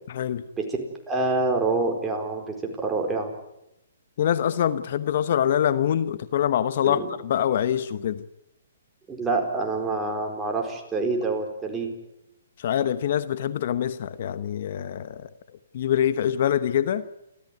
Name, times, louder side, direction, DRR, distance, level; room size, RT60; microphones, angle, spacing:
voice 1, 0.1-0.4 4.2-8.2 12.6-15.3 15.7-17.1, left 10 dB, 55° left, 14 dB, 1.0 m, -24 dB
voice 2, 1.1-3.3 6.8-7.1 9.1-11.9, right 3 dB, 10° right, 2 dB, 4.5 m, -26 dB
29.5 x 14.0 x 9.3 m, 0.85 s
hypercardioid pair, 145°, 0 cm